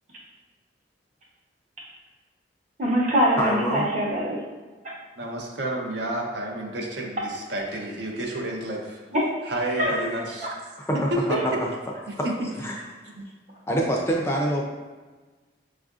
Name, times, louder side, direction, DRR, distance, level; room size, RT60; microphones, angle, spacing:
voice 1, 2.8-4.4 4.8-4.9 9.1-9.2 9.8-9.9 10.4-10.5, equal, 40° right, -4 dB, 0.8 m, -23 dB
voice 2, 3.4-3.9 9.9-10.0 10.8-11.7 12.1-12.3 12.6-12.8 13.7-14.6, right 1 dB, 15° left, -1 dB, 0.4 m, -25 dB
voice 3, 5.2-9.0 9.4-10.5 10.9-11.6 12.1-12.5 13.2-13.3, right 1 dB, 70° right, 0 dB, 0.6 m, -30 dB
5.4 x 2.4 x 2.4 m, 1.3 s
head